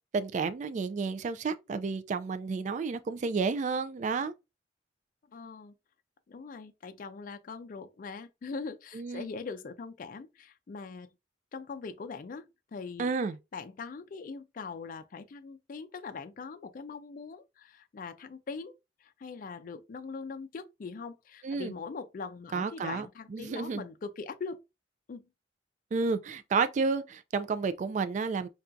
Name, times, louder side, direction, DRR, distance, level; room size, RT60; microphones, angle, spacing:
voice 1, 0.1-4.3 8.9-9.3 13.0-13.4 21.4-21.7 22.5-23.1 23.3-23.8 25.9-28.5, right 4 dB, 45° right, 0.3 m, -31 dB
voice 2, 5.3-5.7 6.3-11.1 11.5-13.1 13.5-18.7 19.0-24.6 25.1-25.3, left 4 dB, 50° left, 0.4 m, -41 dB
5.6 x 2.3 x 2.5 m
head